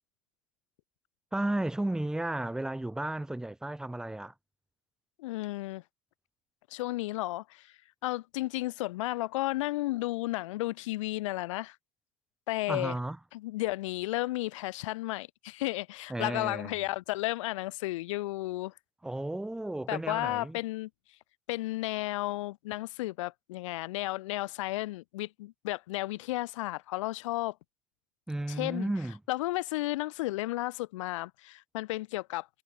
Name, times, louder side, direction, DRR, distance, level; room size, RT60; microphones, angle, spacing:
voice 1, 1.3-4.3 12.7-13.2 16.1-16.7 19.0-20.6 28.3-29.2, right 1 dB, 5° right, 0.4 m, -33 dB
voice 2, 5.2-5.8 6.7-7.7 8.0-11.8 12.5-13.0 13.3-18.7 19.9-20.9 21.5-27.6 28.6-28.9 29.3-32.5, left 18 dB, 75° left, 0.4 m, -33 dB
hypercardioid pair, 85°, 16 cm